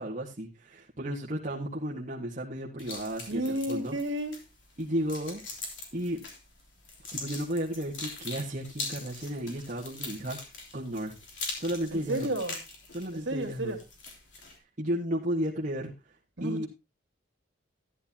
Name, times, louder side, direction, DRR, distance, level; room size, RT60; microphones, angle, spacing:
voice 1, 0.0-4.0 4.8-5.5 5.9-6.2 7.1-10.4 10.7-11.1 11.6-12.3 12.9-13.8 14.8-15.9 16.4-16.7, equal, 40° right, -3 dB, 1.7 m, -33 dB
sound 1, 2.8-14.6, left 3 dB, 70° left, 3.4 m, -42 dB
voice 2, 3.3-4.4 11.9-12.5 13.1-13.8 16.4-16.7, right 1 dB, 65° right, 3 dB, 2.7 m, -32 dB
13.5 x 10.0 x 2.9 m, 0.25 s
head